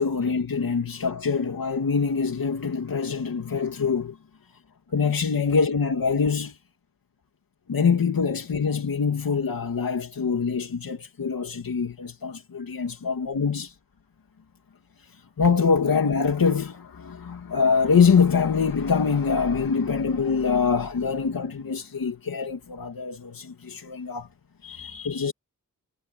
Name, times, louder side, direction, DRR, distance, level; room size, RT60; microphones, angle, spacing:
voice 1, 0.0-4.2 4.9-6.6 7.7-13.7 15.1-24.3 24.6-25.3, left 5 dB, 90° left, 2.6 m, -24 dB
wide cardioid pair, 75°, 34 cm